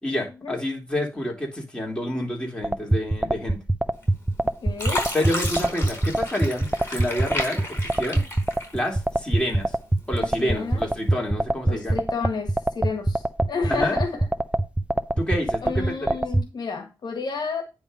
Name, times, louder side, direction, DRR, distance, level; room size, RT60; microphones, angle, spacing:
voice 1, 0.0-3.6 5.1-8.2 8.7-9.7 10.1-12.0 13.7-14.0 15.2-15.9, left 1 dB, 15° left, 3.8 m, -28 dB
sound 1, 2.6-16.4, right 1 dB, 15° right, 0.6 m, -22 dB
Fill (with liquid), 4.0-4.4 4.8-9.2 9.6-10.4 11.0-11.1, left 1 dB, 30° left, 4.8 m, -32 dB
voice 2, 4.6-5.0 10.2-10.8 11.7-14.3 15.6-17.6, left 4 dB, 70° left, 1.6 m, -31 dB
9.6 x 3.6 x 5.5 m
cardioid pair, 60°, 7 cm